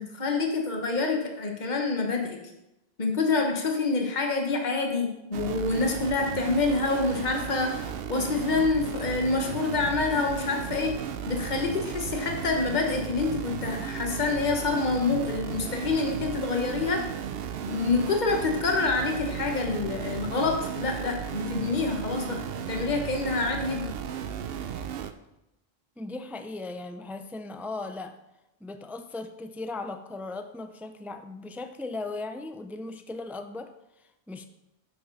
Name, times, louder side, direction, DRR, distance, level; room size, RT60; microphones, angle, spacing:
voice 1, 0.0-2.4 3.0-10.9 11.3-17.0 17.6-22.4 22.7-23.9, left 3 dB, 45° left, 2 dB, 1.4 m, -27 dB
sound 1, 5.3-25.1, right 8 dB, 75° right, 0.8 m, -35 dB
voice 2, 26.0-28.2 28.6-34.4, left 3 dB, 5° right, 8 dB, 0.3 m, -37 dB
10.5 x 6.9 x 4.0 m, 0.91 s
omnidirectional pair, 1.0 m